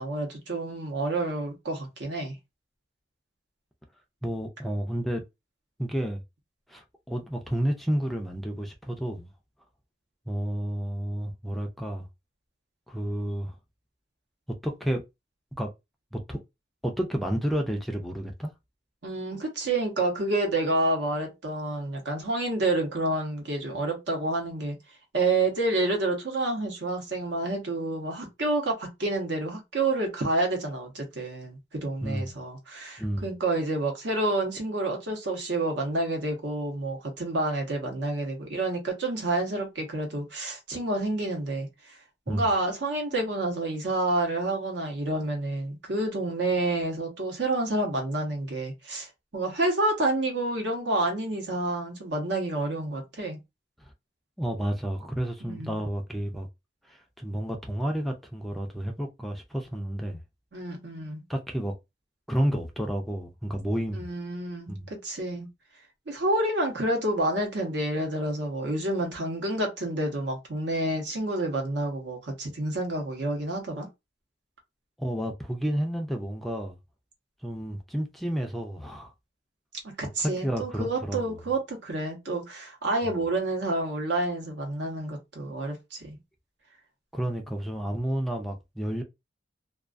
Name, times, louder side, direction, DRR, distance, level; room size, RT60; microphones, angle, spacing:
voice 1, 0.0-2.3 19.0-24.7 25.1-42.0 42.3-53.4 55.4-55.8 60.5-61.2 63.9-65.5 66.1-73.9 79.8-86.2, right 2 dB, 70° right, 0.9 m, -29 dB
voice 2, 4.2-5.2 5.8-6.2 6.7-9.3 10.3-12.1 12.9-13.5 14.6-15.0 15.6-15.7 16.1-16.4 16.8-18.5 32.0-32.4 33.0-33.3 42.3-42.4 53.8-53.9 54.4-56.5 56.9-60.2 61.3-61.7 62.3-64.1 64.7-64.8 75.0-76.8 77.4-79.1 80.2-81.4 83.0-83.2 87.1-89.0, right 1 dB, ahead, 0.4 m, -31 dB
2.3 x 2.3 x 2.4 m
head